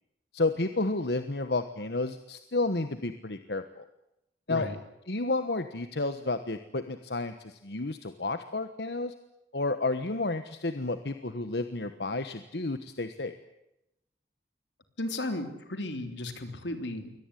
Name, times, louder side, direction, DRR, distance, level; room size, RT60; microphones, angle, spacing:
voice 1, 0.3-3.8 4.5-4.7 5.1-9.1 9.5-13.3, left 2 dB, 65° left, 10 dB, 1.3 m, -31 dB
voice 2, 15.0-17.1, left 1 dB, 85° left, 7 dB, 3.3 m, -34 dB
23.5 x 18.5 x 9.9 m, 0.87 s
head